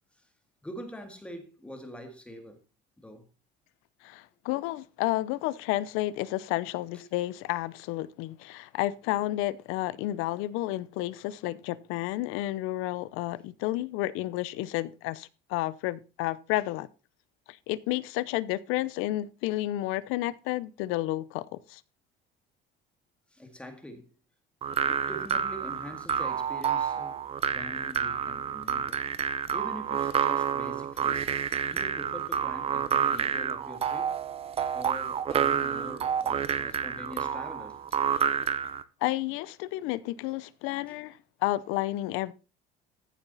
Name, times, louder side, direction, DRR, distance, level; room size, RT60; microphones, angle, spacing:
voice 1, 0.6-2.6 3.0-3.3 6.9-7.0 23.3-24.1 24.8-27.2 27.5-34.1 34.7-38.0 40.7-41.0, equal, 5° left, 2.0 m, -44 dB
voice 2, 4.0-16.9 17.5-21.8 39.0-42.3, left 16 dB, 80° left, 0.8 m, -31 dB
sound 1, 24.6-38.8, right 8 dB, 30° right, 0.7 m, -29 dB
14.5 x 7.2 x 4.0 m
cardioid pair, 160°, 21 cm